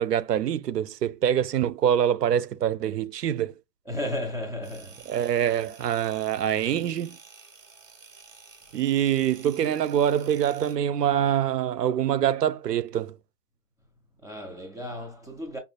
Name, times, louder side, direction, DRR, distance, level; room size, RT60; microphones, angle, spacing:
voice 1, 0.0-3.5 5.1-7.2 8.7-13.2, right 10 dB, 80° right, 0.6 m, -25 dB
voice 2, 3.8-5.1 14.2-15.6, left 1 dB, 5° left, 0.9 m, -34 dB
sound 1, 4.6-10.8, right 5 dB, 50° right, 1.2 m, -51 dB
5.5 x 2.4 x 2.3 m
hypercardioid pair, 170°, 48 cm